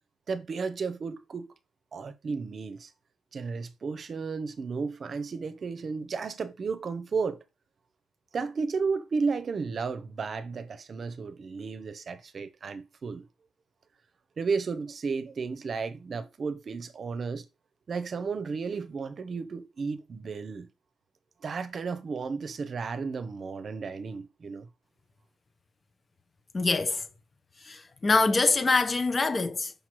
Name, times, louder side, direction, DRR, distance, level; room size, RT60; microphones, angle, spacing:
voice 1, 0.3-1.5 1.9-2.9 3.3-7.4 8.3-13.3 14.4-17.4 17.9-20.7 21.4-24.7, right 5 dB, 45° right, 0.8 m, -33 dB
voice 2, 26.5-27.0 27.6-29.7, left 3 dB, 30° left, 0.9 m, -24 dB
5.8 x 5.3 x 3.0 m
cardioid pair, 90°, 0 cm